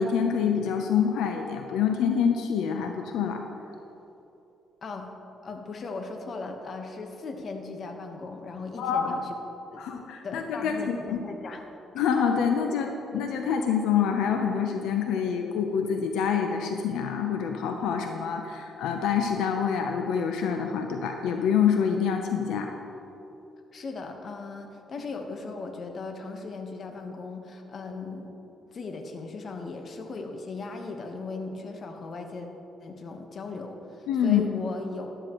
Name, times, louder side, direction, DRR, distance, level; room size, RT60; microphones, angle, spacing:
voice 1, 0.0-3.4 8.8-9.1 9.8-11.2 12.0-22.7 34.1-34.4, left 7 dB, 90° left, 4 dB, 0.7 m, -26 dB
voice 2, 5.4-9.3 9.7-9.8 10.2-11.6 23.7-28.3 28.7-32.5 32.8-35.2, left 3 dB, 50° left, 4 dB, 1.2 m, -37 dB
13.0 x 11.5 x 3.1 m, 3.0 s
cardioid pair, 90°, 0 cm